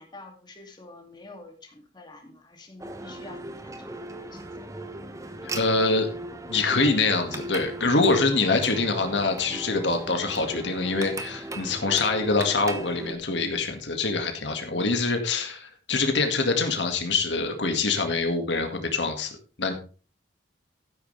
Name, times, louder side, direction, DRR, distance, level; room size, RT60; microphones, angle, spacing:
voice 1, 0.0-4.4 14.7-15.0, left 2 dB, 25° left, 2 dB, 2.5 m, -47 dB
sound 1, 2.8-13.1, right 2 dB, 20° right, 1.1 m, -38 dB
voice 2, 5.5-6.1 6.5-19.7, left 3 dB, 90° left, 5 dB, 2.0 m, -25 dB
13.0 x 10.0 x 3.4 m, 0.37 s
head